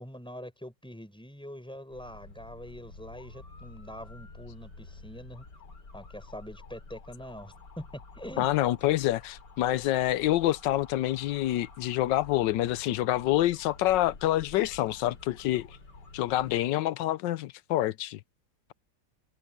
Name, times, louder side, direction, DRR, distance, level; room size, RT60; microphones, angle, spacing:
voice 1, 0.0-5.4 5.9-8.5, equal, ahead, 6.1 m, -44 dB
sound 1, 1.9-16.6, left 3 dB, 65° left, 4.1 m, -50 dB
voice 2, 8.4-15.7 16.1-18.2, left 14 dB, 80° left, 1.3 m, -27 dB
omnidirectional pair, 2.0 m